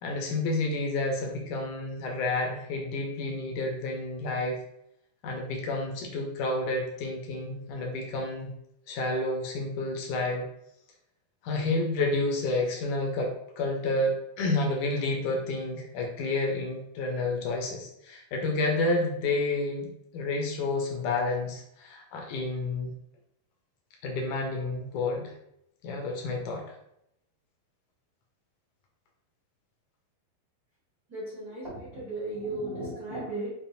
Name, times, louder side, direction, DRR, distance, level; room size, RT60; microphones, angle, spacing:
voice 1, 0.0-4.6 5.2-8.5 8.9-10.4 11.4-22.9 24.0-25.3 25.8-26.8, left 2 dB, 70° left, 0 dB, 1.9 m, -30 dB
voice 2, 31.1-33.5, right 2 dB, 85° right, -8 dB, 0.8 m, -35 dB
7.2 x 2.5 x 2.7 m, 0.77 s
omnidirectional pair, 4.4 m